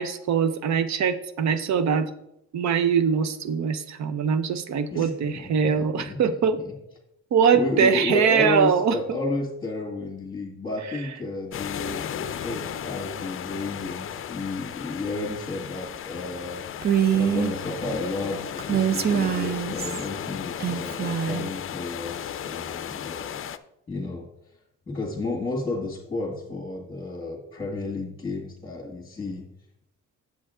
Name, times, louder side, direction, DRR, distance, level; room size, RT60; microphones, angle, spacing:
voice 1, 0.0-2.1 2.5-6.6 7.3-9.0, right 7 dB, 65° right, 11 dB, 0.8 m, -22 dB
voice 2, 4.9-6.7 7.5-16.6 17.1-23.4 23.9-24.3 24.9-29.5, left 3 dB, 15° left, -2 dB, 1.8 m, -32 dB
sound 1, 11.5-23.6, left 9 dB, 45° left, 0.5 m, -35 dB
Female speech woman speaking, 16.8-17.5 18.6-20.1 20.6-21.5, right 9 dB, 35° right, 0.5 m, -24 dB
7.8 x 7.1 x 3.7 m, 0.80 s
cardioid pair, 90°, 30 cm